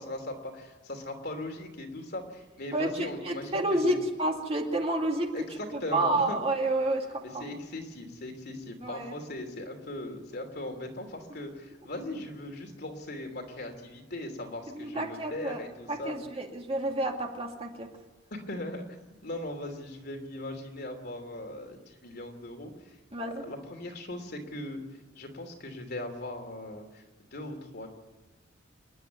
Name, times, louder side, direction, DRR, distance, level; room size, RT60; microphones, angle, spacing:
voice 1, 0.0-4.0 5.3-6.4 7.2-16.2 18.3-18.8 19.2-22.7 23.4-24.8 25.2-27.0 27.3-27.9, left 1 dB, 55° left, 4 dB, 3.0 m, -39 dB
voice 2, 2.7-5.3 5.7-7.4 8.8-9.1 14.7-15.6 15.9-17.9 23.1-23.4, right 2 dB, 30° right, 2 dB, 2.3 m, -30 dB
27.0 x 11.0 x 9.3 m, 1.2 s
head